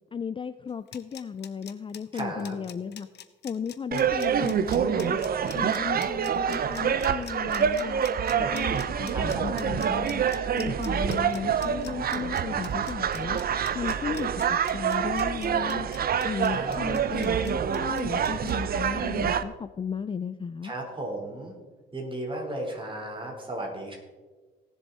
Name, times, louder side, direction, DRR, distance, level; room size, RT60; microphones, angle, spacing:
voice 1, 0.1-3.1 3.4-5.2 5.5-8.0 8.4-10.2 10.5-13.4 13.7-15.9 16.2-20.7, left 6 dB, 25° left, 13 dB, 0.4 m, -35 dB
sound 1, 0.7-18.5, left 10 dB, 60° left, 0.8 m, -46 dB
voice 2, 2.1-2.6 8.3-8.5 8.8-9.8 16.4-17.4 20.6-21.5 21.9-23.9, right 1 dB, 25° right, -1 dB, 4.1 m, -36 dB
sound 2, 3.9-19.4, right 7 dB, 50° right, 0.7 m, -27 dB
18.5 x 7.0 x 4.2 m, 1.3 s
cardioid pair, 90°, 20 cm